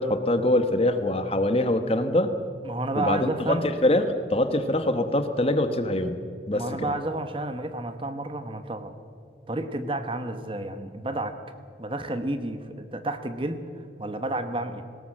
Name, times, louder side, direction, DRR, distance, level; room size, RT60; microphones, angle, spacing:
voice 1, 0.0-2.3 3.0-6.2 6.5-6.9, left 1 dB, 35° left, 9 dB, 1.2 m, -24 dB
voice 2, 2.6-3.7 6.5-8.9 9.5-11.4 11.8-13.6 14.0-14.8, right 2 dB, 30° right, 9 dB, 1.1 m, -31 dB
20.0 x 17.5 x 7.4 m, 2.4 s
head